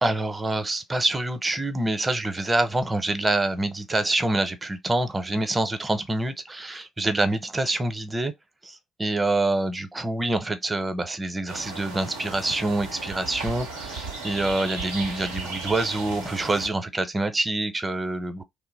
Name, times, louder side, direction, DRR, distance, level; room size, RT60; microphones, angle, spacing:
voice 1, 0.0-8.3 8.6-18.4, right 2 dB, 20° right, 0.7 m, -26 dB
sound 1, 11.5-16.7, right 3 dB, 85° right, 0.7 m, -35 dB
2.8 x 2.0 x 4.0 m
hypercardioid pair, 45°, 0 cm